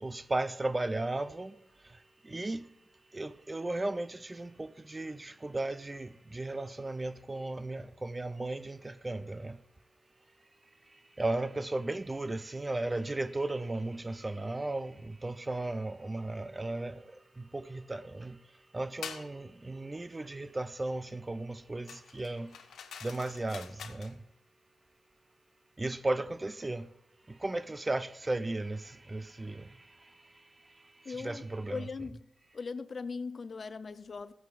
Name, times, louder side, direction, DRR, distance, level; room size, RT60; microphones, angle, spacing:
voice 1, 0.0-1.5 2.3-2.6 3.1-9.6 11.2-17.0 17.5-18.4 18.7-22.5 23.0-24.2 25.8-26.9 27.4-28.8 29.1-29.6 31.1-31.9, right 2 dB, 25° right, 0.5 m, -35 dB
sound 1, 19.0-19.3 21.9-24.1, left 7 dB, 80° left, 0.8 m, -46 dB
voice 2, 31.0-32.3 32.5-34.3, left 4 dB, 55° left, 0.6 m, -40 dB
15.0 x 8.9 x 2.5 m
supercardioid pair, 50°, 0 cm